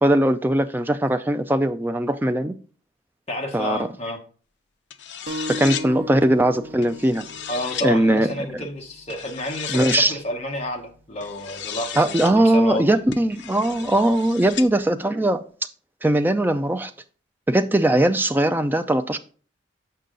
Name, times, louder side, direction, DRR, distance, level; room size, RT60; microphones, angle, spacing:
voice 1, 0.0-2.5 3.5-3.8 5.5-7.3 7.8-8.7 9.7-10.2 12.0-15.4 16.0-16.9 17.5-19.2, right 1 dB, 10° right, 0.3 m, -20 dB
voice 2, 3.3-4.2 7.5-12.8, equal, 30° left, 1.0 m, -30 dB
sound 1, 4.9-5.9 6.8-7.9 9.1-10.1 11.2-12.3 13.1-14.7, left 9 dB, 60° left, 0.5 m, -34 dB
sound 2, 5.3-10.4, equal, 60° right, 0.9 m, -38 dB
6.8 x 5.4 x 3.8 m
head